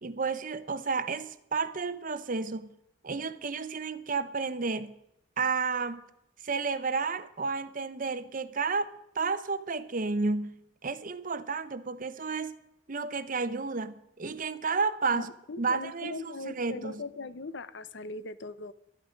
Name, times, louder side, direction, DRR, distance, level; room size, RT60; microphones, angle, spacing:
voice 1, 0.0-2.7 3.0-4.9 5.4-6.0 6.4-12.6 12.9-15.3 15.6-17.0, right 4 dB, 45° right, 0.8 m, -32 dB
voice 2, 15.1-18.7, left 3 dB, 65° left, 0.7 m, -40 dB
12.5 x 12.0 x 5.2 m
head